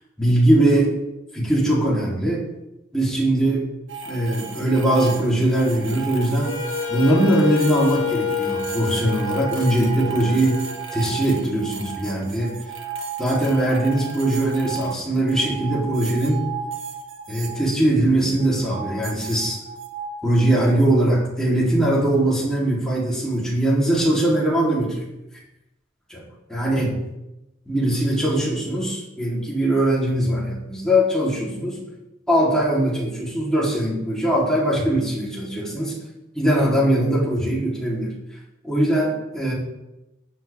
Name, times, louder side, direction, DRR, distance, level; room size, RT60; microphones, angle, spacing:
voice 1, 0.2-1.0 1.3-2.5 2.9-3.7 4.1-6.6 6.9-10.6 10.9-12.6 13.2-16.5 17.3-19.6 20.2-25.0 26.1-26.2 26.5-27.0 27.7-31.8 32.3-36.0 36.3-38.1 38.6-39.5, right 1 dB, 5° left, -6 dB, 3.8 m, -21 dB
sound 1, 3.9-17.6 18.4-21.0, right 5 dB, 75° right, 1.4 m, -34 dB
Wind instrument woodwind instrument, 6.4-11.4, left 8 dB, 90° left, 1.3 m, -28 dB
14.5 x 9.2 x 3.7 m, 0.94 s
head